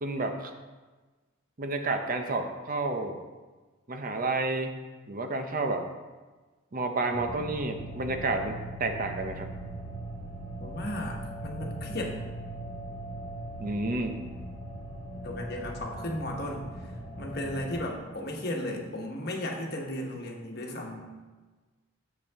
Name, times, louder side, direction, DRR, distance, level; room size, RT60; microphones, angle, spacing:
voice 1, 0.0-0.5 1.6-3.2 3.9-4.7 5.1-5.9 6.7-9.5 13.6-14.2, right 2 dB, 40° right, 6 dB, 0.7 m, -30 dB
sound 1, 7.1-17.8, right 2 dB, 85° right, 2.2 m, -40 dB
voice 2, 10.6-12.1 15.2-16.9 17.2-21.2, left 1 dB, 50° left, 0 dB, 1.2 m, -35 dB
8.3 x 6.8 x 3.6 m, 1.3 s
head